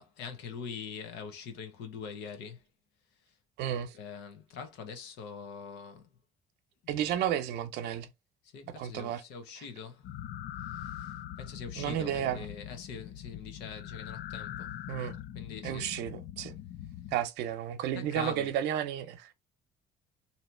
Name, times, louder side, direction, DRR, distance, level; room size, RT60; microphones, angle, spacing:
voice 1, 0.0-2.6 3.9-6.1 8.4-10.2 10.6-14.7 15.3-15.8 17.9-18.5, left 6 dB, 90° left, 1.0 m, -43 dB
voice 2, 3.6-4.0 6.9-8.1 8.8-9.2 9.6-9.7 11.8-12.5 14.9-15.2 15.6-16.5 17.1-19.3, right 10 dB, 90° right, 0.7 m, -32 dB
sound 1, 10.0-17.2, left 11 dB, 70° left, 0.4 m, -42 dB
2.9 x 2.8 x 4.4 m
cardioid pair, 110°, 17 cm